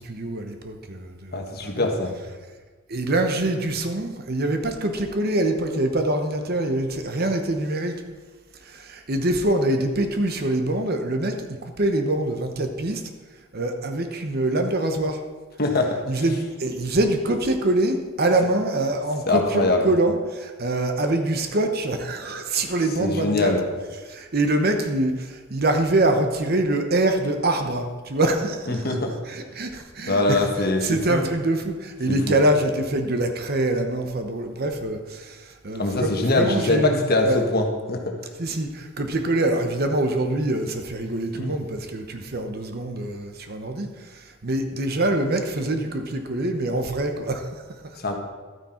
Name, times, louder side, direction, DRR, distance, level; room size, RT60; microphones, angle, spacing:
voice 1, 0.0-1.9 2.9-8.0 8.6-13.0 13.5-15.2 16.1-23.5 24.1-29.0 29.3-30.4 30.8-37.4 38.4-48.2, right 1 dB, 50° right, 6 dB, 1.0 m, -25 dB
voice 2, 1.3-2.1 15.6-16.2 19.3-19.8 23.0-23.6 28.7-29.1 30.1-31.3 32.1-32.4 35.8-38.2 41.3-41.5 48.0-48.2, left 2 dB, 45° left, 3 dB, 1.4 m, -23 dB
12.0 x 9.4 x 4.4 m, 1.4 s
head